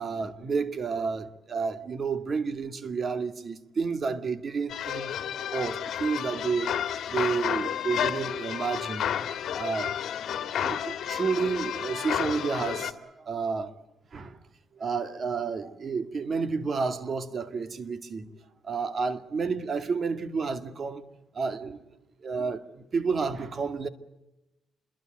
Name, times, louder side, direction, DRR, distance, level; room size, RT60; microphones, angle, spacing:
voice 1, 0.0-5.1 5.5-6.8 7.1-9.1 9.6-10.0 10.6-13.7 14.1-14.4 14.8-18.3 18.6-21.0 21.3-21.8 22.2-23.9, right 5 dB, 45° right, 2.2 m, -30 dB
sound 1, 4.7-12.9, left 9 dB, 65° left, 2.0 m, -31 dB
27.5 x 22.5 x 7.9 m
cardioid pair, 90°, 0 cm